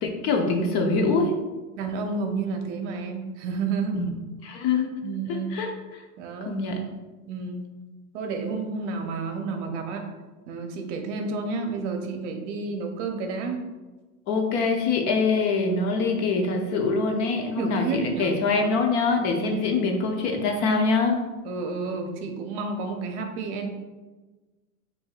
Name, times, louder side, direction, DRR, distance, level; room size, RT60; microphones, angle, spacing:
voice 1, 0.0-1.3 3.9-4.1 4.4-5.0 5.3-5.7 6.4-6.8 14.3-21.2, left 4 dB, 35° left, 3 dB, 0.6 m, -24 dB
voice 2, 1.7-4.0 5.0-5.6 6.2-6.6 7.3-7.7 8.1-10.1 10.5-13.6 17.6-18.3 19.4-19.9 21.4-23.7, right 4 dB, 50° right, 4 dB, 0.8 m, -30 dB
7.3 x 2.7 x 2.4 m, 1.2 s
hypercardioid pair, 115°, 44 cm